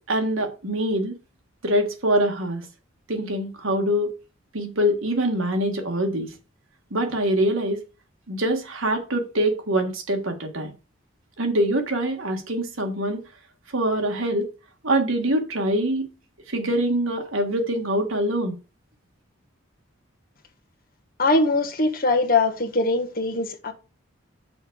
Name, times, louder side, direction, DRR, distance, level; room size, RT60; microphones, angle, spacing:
voice 1, 0.1-1.1 1.6-2.7 3.1-4.1 4.5-6.3 6.9-7.8 8.3-10.7 11.4-13.2 13.7-14.5 14.8-16.1 16.5-18.6, right 1 dB, 75° right, 1.7 m, -24 dB
voice 2, 21.2-23.7, left 3 dB, 45° left, 1.3 m, -22 dB
6.2 x 4.6 x 6.2 m
head